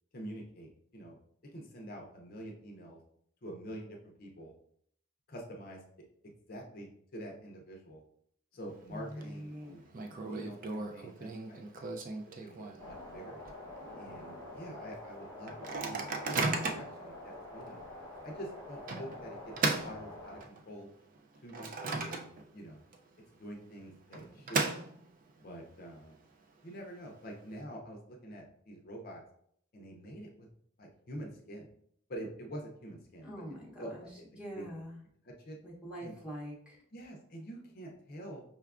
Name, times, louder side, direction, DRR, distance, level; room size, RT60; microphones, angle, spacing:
voice 1, 0.1-1.2 1.5-3.0 3.4-4.5 5.3-5.8 6.5-8.0 8.5-13.4 14.0-15.5 15.8-17.8 18.2-19.5 19.8-20.9 21.4-22.2 22.5-22.8 23.4-24.7 25.4-26.2 26.6-29.2 29.7-30.5 30.8-31.7 32.1-33.4 33.8-34.1 34.6-34.7 35.2-35.6 36.0-36.1 36.9-38.4, right 1 dB, 45° left, 0 dB, 0.5 m, -46 dB
Microwave oven, 8.7-9.2 9.5-9.6 9.9-13.0 13.4-13.5 13.8-14.1 14.6-14.7 15.5-17.0 17.6-17.7 18.9-20.7 21.1-22.6 22.9-23.0 23.9-25.3, right 3 dB, 40° right, 0.3 m, -36 dB
voice 2, 8.9-9.7 33.2-34.1 34.4-35.0 35.6-36.8, equal, 5° right, -4 dB, 0.8 m, -44 dB
sound 1, 12.8-20.4, left 1 dB, 70° right, 1.2 m, -47 dB
5.5 x 2.3 x 2.4 m, 0.67 s
head